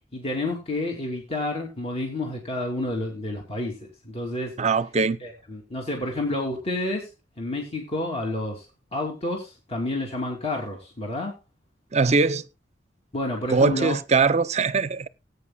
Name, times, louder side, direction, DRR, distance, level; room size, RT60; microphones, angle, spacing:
voice 1, 0.1-4.5 5.2-7.1 7.4-8.7 8.9-11.4 13.1-14.0, left 2 dB, 35° left, 2.8 m, -29 dB
voice 2, 4.6-5.2 11.9-12.5 13.5-15.1, right 4 dB, 35° right, 0.6 m, -21 dB
19.5 x 9.1 x 2.3 m
head